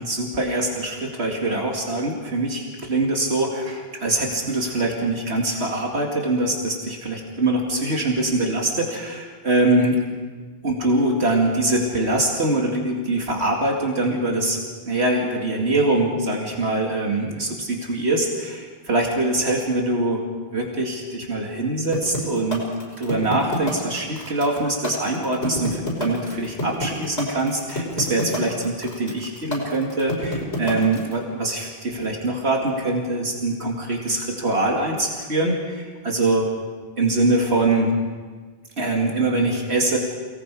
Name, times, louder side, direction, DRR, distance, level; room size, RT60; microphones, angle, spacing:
voice 1, 0.0-10.0 10.6-14.6 14.9-20.3 20.5-22.6 23.0-36.5 37.0-37.9 38.8-40.0, right 2 dB, 80° right, -1 dB, 2.6 m, -23 dB
sound 1, 21.9-31.1, left 1 dB, 85° left, 5.9 m, -28 dB
28.5 x 19.0 x 4.9 m, 1.5 s
omnidirectional pair, 1.1 m